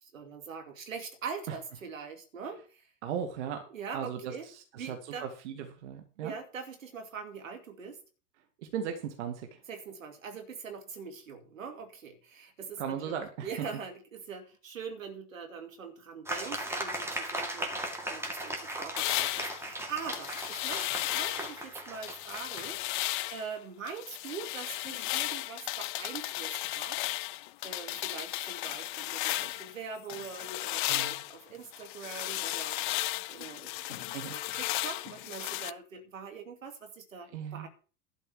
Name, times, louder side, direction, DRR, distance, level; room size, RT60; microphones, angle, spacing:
voice 1, 0.0-2.9 3.7-4.5 4.8-5.3 6.2-8.0 9.7-17.7 18.1-27.2 27.6-37.7, right 6 dB, 75° right, 5 dB, 2.5 m, -43 dB
voice 2, 3.0-3.6 3.9-6.3 8.7-9.6 12.8-13.5 30.9-31.2 33.9-34.6 37.3-37.7, right 8 dB, 55° right, 5 dB, 2.0 m, -37 dB
sound 1, 16.3-22.7, right 1 dB, 5° right, 2.4 m, -37 dB
sound 2, 19.0-21.6 22.0-23.5 23.9-29.7 30.1-35.7, left 18 dB, 40° left, 0.4 m, -35 dB
12.0 x 5.4 x 7.7 m, 0.38 s
figure-of-eight pair, 95°, 40 cm